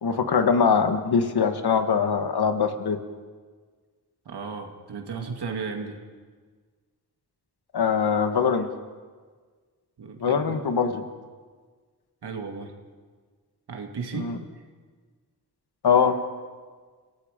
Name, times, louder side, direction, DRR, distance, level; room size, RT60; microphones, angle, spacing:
voice 1, 0.0-3.0 7.7-8.7 10.2-11.0 14.1-14.3 15.8-16.2, left 6 dB, 75° left, 7 dB, 1.6 m, -22 dB
voice 2, 4.3-6.0 10.0-10.7 12.2-12.7 13.7-14.6, right 5 dB, 85° right, 4 dB, 2.3 m, -35 dB
29.5 x 17.5 x 5.2 m, 1.5 s
wide cardioid pair, 120°, 39 cm